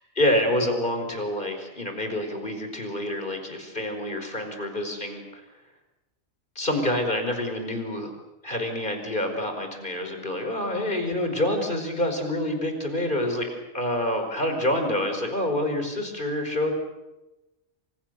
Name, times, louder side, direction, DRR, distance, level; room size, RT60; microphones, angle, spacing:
voice 1, 0.2-5.4 6.5-8.1 8.4-16.7, left 1 dB, 35° left, 5 dB, 5.2 m, -27 dB
27.5 x 26.5 x 6.8 m, 1.0 s
omnidirectional pair, 1.4 m